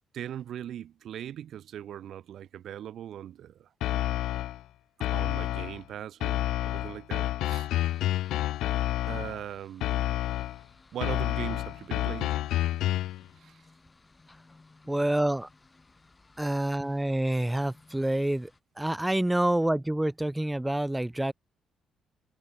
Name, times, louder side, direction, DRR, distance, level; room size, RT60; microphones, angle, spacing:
voice 1, 0.1-3.7 5.0-7.7 9.1-10.0 10.9-12.4 13.4-13.6, right 10 dB, 60° right, 3.5 m, -40 dB
sound 1, 3.8-4.6 5.0-5.8 6.2-9.4 9.8-10.6 11.0-13.2, left 14 dB, 90° left, 0.5 m, -29 dB
sound 2, 7.7-18.6, left 3 dB, 15° left, 6.2 m, -59 dB
voice 2, 14.9-15.5 16.4-18.5 18.8-21.3, right 1 dB, 5° right, 0.5 m, -27 dB
cardioid pair, 160°, 0 cm